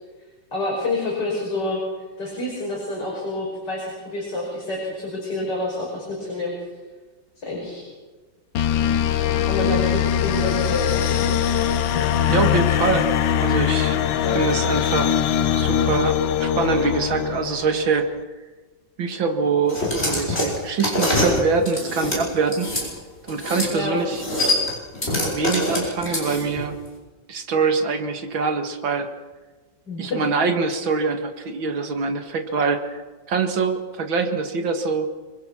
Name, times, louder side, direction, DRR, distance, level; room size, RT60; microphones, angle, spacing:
voice 1, 0.5-1.8 2.2-6.5 7.4-7.8 9.5-11.3 14.2-14.4 23.7-24.0 29.9-30.2, left 2 dB, 60° left, -3 dB, 6.1 m, -28 dB
sound 1, 8.5-18.0, left 10 dB, 80° left, 1.7 m, -21 dB
voice 2, 12.3-13.1 13.4-14.0 14.3-15.2 15.6-18.1 19.0-22.7 23.3-24.2 25.2-26.8 27.3-29.1 30.0-33.0 33.3-35.1, right 4 dB, 85° right, 6 dB, 2.6 m, -24 dB
sound 2, 19.7-22.9 23.3-23.7 24.0-26.6, left 1 dB, 30° left, 6.7 m, -24 dB
26.0 x 23.5 x 6.3 m, 1.3 s
omnidirectional pair, 2.1 m